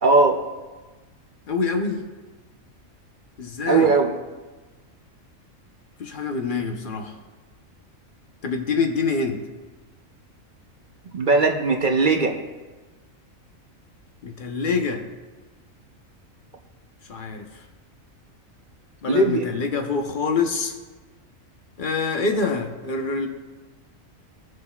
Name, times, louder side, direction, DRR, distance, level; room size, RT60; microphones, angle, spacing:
voice 1, 0.0-0.4 3.7-4.1 11.1-12.4 19.1-19.5, right 3 dB, 45° right, 3 dB, 0.8 m, -18 dB
voice 2, 1.5-2.0 3.4-3.9 6.0-7.2 8.4-9.4 14.2-15.0 17.1-17.5 19.0-20.7 21.8-23.3, left 4 dB, 40° left, 4 dB, 1.0 m, -25 dB
19.0 x 6.4 x 2.4 m, 1.3 s
omnidirectional pair, 1.4 m